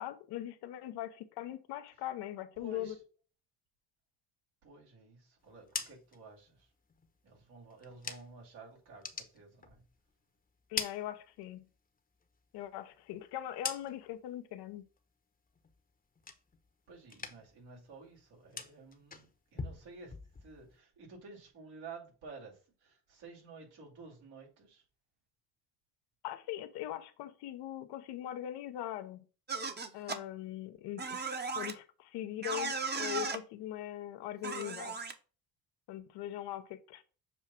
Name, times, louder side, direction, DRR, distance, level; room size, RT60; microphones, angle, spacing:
voice 1, 0.0-2.9 10.7-11.6 12.5-14.8 26.2-29.2 29.9-35.0 35.9-37.0, left 13 dB, 90° left, 0.7 m, -41 dB
voice 2, 2.6-3.0 4.6-6.7 7.2-9.8 16.9-20.1 20.4-24.8, right 3 dB, 85° right, 2.6 m, -52 dB
sound 1, 5.4-8.5 8.9-10.2 10.5-11.8 12.1-14.3 14.7-15.1 15.5-16.8 17.0-17.7 17.9-20.8, left 5 dB, 25° left, 0.8 m, -44 dB
sound 2, 29.5-30.2 31.0-31.7 32.4-33.4 34.4-35.1, right 4 dB, 25° right, 0.8 m, -36 dB
7.1 x 2.4 x 5.6 m
cardioid pair, 85°, 39 cm